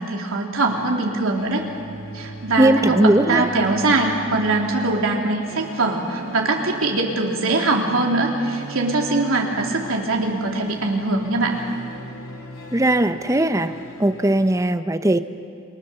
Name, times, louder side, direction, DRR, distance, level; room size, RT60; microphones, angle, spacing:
voice 1, 0.0-1.7 2.1-11.6, right 2 dB, 75° right, 0 dB, 3.3 m, -22 dB
sound 1, 0.7-14.4, equal, 70° left, 3.6 m, -39 dB
voice 2, 2.6-3.5 12.7-13.7 14.0-15.2, right 1 dB, 15° right, 10 dB, 0.9 m, -18 dB
29.5 x 24.5 x 6.9 m, 2.4 s
head